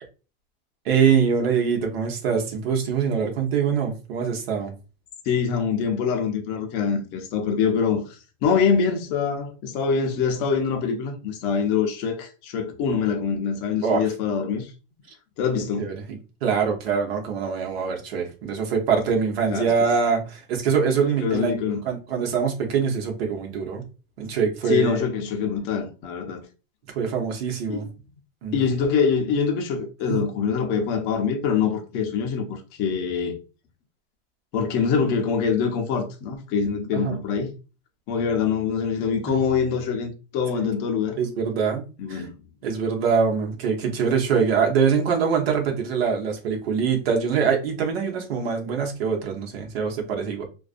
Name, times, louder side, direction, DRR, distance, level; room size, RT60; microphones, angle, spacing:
voice 1, 0.8-4.7 13.8-14.0 15.8-21.6 21.8-23.8 24.2-25.0 26.9-27.9 28.4-28.6 30.1-30.2 36.9-37.2 39.3-39.4 40.5-40.7 41.2-42.2 42.6-50.4, right 6 dB, 85° right, 0.9 m, -24 dB
voice 2, 5.3-14.7 15.4-15.9 19.5-19.7 21.2-21.8 24.7-26.4 27.7-27.8 28.5-33.3 34.5-37.5 38.1-41.2 42.0-42.3, left 6 dB, 35° left, 0.5 m, -24 dB
2.4 x 2.2 x 2.4 m
supercardioid pair, 155°, 29 cm